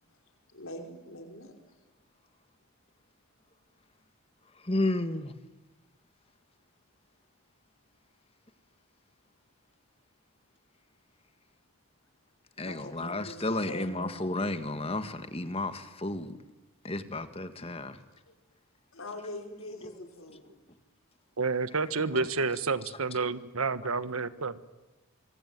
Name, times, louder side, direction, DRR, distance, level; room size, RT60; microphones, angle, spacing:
voice 1, 0.5-1.5 12.6-14.2 18.3-18.4 18.9-20.6, left 1 dB, 65° left, 4.9 m, -43 dB
voice 2, 4.6-5.3 12.6-16.4 16.8-18.0 19.8-20.1 22.1-22.3 22.5-23.2 23.8-23.9, left 2 dB, 25° left, 1.7 m, -33 dB
voice 3, 21.4-24.6, right 4 dB, 75° right, 1.4 m, -30 dB
25.5 x 24.0 x 9.4 m
head